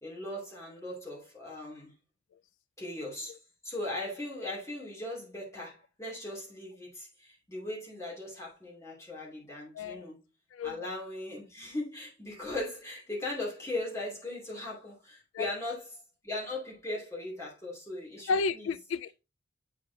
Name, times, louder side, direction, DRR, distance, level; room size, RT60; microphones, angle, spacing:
voice 1, 0.0-1.9 2.8-10.2 10.6-18.7, left 1 dB, 15° left, 2.6 m, -39 dB
voice 2, 9.8-10.1 10.6-10.8 15.3-15.5 18.3-19.2, left 4 dB, 75° left, 0.3 m, -31 dB
8.2 x 4.8 x 2.7 m
head